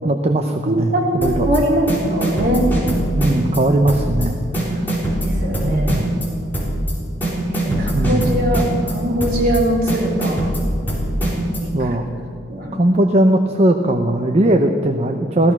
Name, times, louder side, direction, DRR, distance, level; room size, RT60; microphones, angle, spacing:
voice 1, 0.0-1.5 3.1-4.4 4.7-4.8 5.6-6.1 7.7-8.3 11.7-12.0 12.7-15.5, right 1 dB, 35° right, 5 dB, 0.7 m, -18 dB
voice 2, 0.6-2.7 5.2-5.9 7.5-10.4 11.6-12.0 12.5-12.8, right 1 dB, 55° right, -3 dB, 3.5 m, -21 dB
sound 1, 1.2-1.6 1.9-3.6 3.9-4.3 4.5-6.3 6.5-6.9 7.2-8.9 9.2-9.6 9.9-11.6, right 1 dB, 10° left, 4.2 m, -21 dB
16.0 x 15.0 x 6.0 m, 2.4 s
head